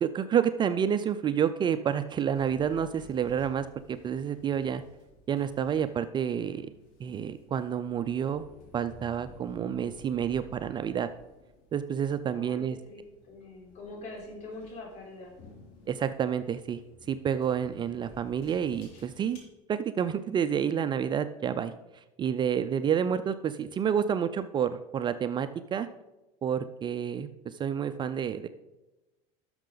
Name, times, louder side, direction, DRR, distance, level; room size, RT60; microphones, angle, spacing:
voice 1, 0.0-4.8 5.3-6.7 7.0-8.4 8.7-11.1 11.7-12.8 15.9-16.8 17.1-19.4 19.7-25.9 26.4-28.5, right 8 dB, 30° right, 11 dB, 0.4 m, -29 dB
sound 1, 2.3-19.4, left 2 dB, 65° left, 3.5 m, -54 dB
voice 2, 12.3-15.3, left 2 dB, 45° left, -1 dB, 3.8 m, -44 dB
11.5 x 6.5 x 3.9 m, 1.0 s
supercardioid pair, 120°, 16 cm